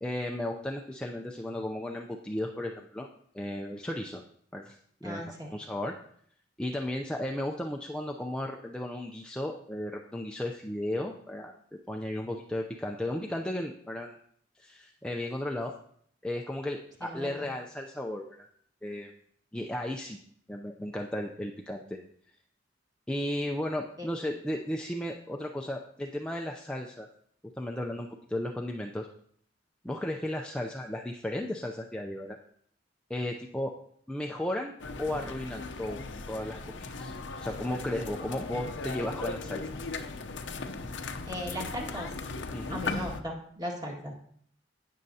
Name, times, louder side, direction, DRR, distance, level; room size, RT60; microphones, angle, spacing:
voice 1, 0.0-3.1 3.3-4.2 4.5-5.9 6.6-14.2 14.6-15.7 16.2-18.4 18.8-19.1 19.5-20.2 20.5-22.0 23.1-27.1 27.6-29.1 29.8-32.4 33.1-33.7 34.1-34.7 35.0-37.1 37.4-39.9 42.5-42.8, left 1 dB, 5° left, 0 dB, 0.5 m, -35 dB
voice 2, 5.0-5.6 17.0-17.5 24.0-24.1 41.3-42.1 42.7-44.1, equal, 20° right, -1 dB, 1.9 m, -37 dB
sound 1, 34.8-43.2, left 3 dB, 70° left, 0.7 m, -38 dB
18.5 x 6.5 x 2.8 m, 0.63 s
head